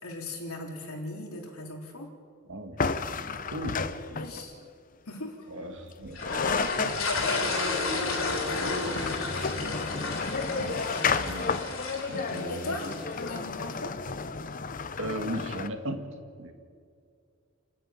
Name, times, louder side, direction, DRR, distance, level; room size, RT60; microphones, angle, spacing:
voice 1, 0.0-2.1 4.1-4.5 5.1-5.5 6.5-9.9 12.5-12.8 13.1-13.9, left 2 dB, 85° left, 0 dB, 3.6 m, -38 dB
voice 2, 2.5-3.1 3.5-3.9 5.5-6.2 6.8-7.0 10.4-11.5 12.1-12.8 15.0-16.5, right 1 dB, 60° right, 5 dB, 2.1 m, -37 dB
sound 1, 2.8-4.5 5.9-6.0 6.2-15.7, left 4 dB, 40° left, 0.7 m, -32 dB
sound 2, 6.1-13.4, left 3 dB, 70° left, 3.9 m, -33 dB
29.0 x 10.0 x 9.4 m, 2.4 s
head